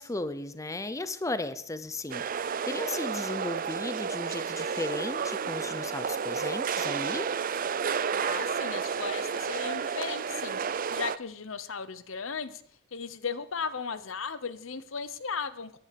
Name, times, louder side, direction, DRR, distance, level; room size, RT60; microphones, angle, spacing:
voice 1, 0.0-7.3, left 2 dB, 15° left, 13 dB, 0.6 m, -35 dB
sound 1, 2.1-11.2, right 6 dB, 40° right, 0.5 m, -31 dB
voice 2, 8.1-12.6 12.9-15.8, left 5 dB, 65° left, 15 dB, 0.9 m, -36 dB
16.0 x 10.5 x 6.8 m, 0.68 s
head